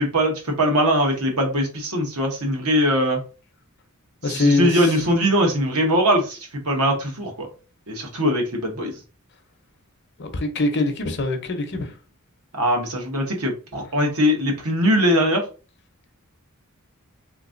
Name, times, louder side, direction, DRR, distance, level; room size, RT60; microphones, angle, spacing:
voice 1, 0.0-3.2 4.2-7.5 7.9-9.0 12.5-15.4, equal, 75° right, 1.1 m, -21 dB
voice 2, 4.2-4.9 10.2-12.0, left 3 dB, 50° left, 0.7 m, -23 dB
3.6 x 2.9 x 2.5 m
head